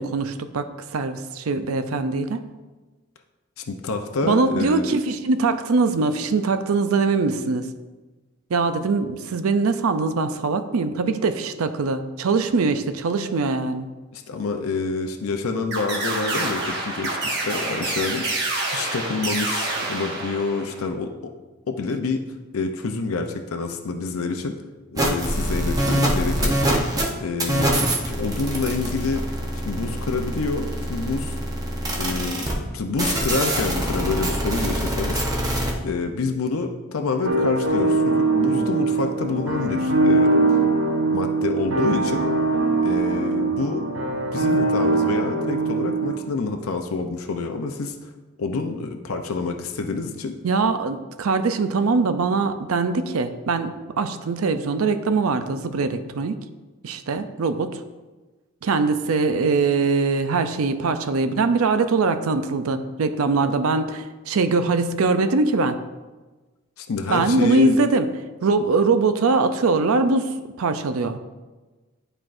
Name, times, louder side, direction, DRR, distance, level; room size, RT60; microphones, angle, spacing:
voice 1, 0.0-2.4 4.2-7.7 8.5-13.9 50.4-56.4 56.8-57.8 58.6-65.8 67.1-68.1 68.4-70.3 70.6-71.2, right 4 dB, 85° right, 10 dB, 0.5 m, -22 dB
voice 2, 3.7-4.9 14.1-18.2 18.5-21.1 21.7-22.2 22.5-24.6 24.9-26.6 27.2-29.3 29.6-31.4 32.0-35.5 35.8-40.6 41.1-42.3 42.8-43.8 44.3-48.1 48.4-50.4 66.8-67.7, left 4 dB, 85° left, 5 dB, 0.5 m, -27 dB
sound 1, 15.7-20.9, right 2 dB, 50° right, 1.1 m, -27 dB
sound 2, 25.0-27.1 27.4-32.5 33.0-35.7, right 1 dB, 15° right, 0.8 m, -24 dB
sound 3, 37.3-46.2, right 3 dB, 70° right, 0.9 m, -22 dB
10.5 x 4.5 x 2.5 m, 1.2 s
head